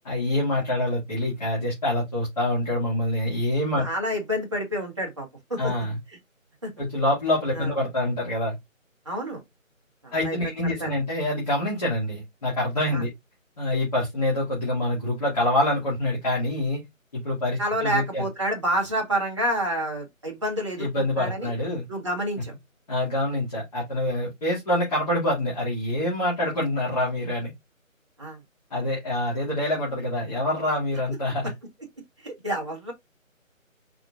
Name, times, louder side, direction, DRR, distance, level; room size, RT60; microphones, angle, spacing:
voice 1, 0.0-3.8 5.6-6.0 6.8-8.5 10.1-13.1 13.6-16.8 17.1-18.2 20.8-21.8 22.9-27.5 28.7-31.5, left 1 dB, 30° left, 2.0 m, -26 dB
voice 2, 3.8-5.6 6.6-6.7 7.5-7.7 9.1-9.4 10.0-10.5 10.8-10.9 12.9-13.0 17.6-21.5 21.9-22.5 28.2-28.4 32.2-32.9, equal, 20° right, 1.0 m, -28 dB
4.7 x 3.6 x 2.4 m
figure-of-eight pair, 170°, 41 cm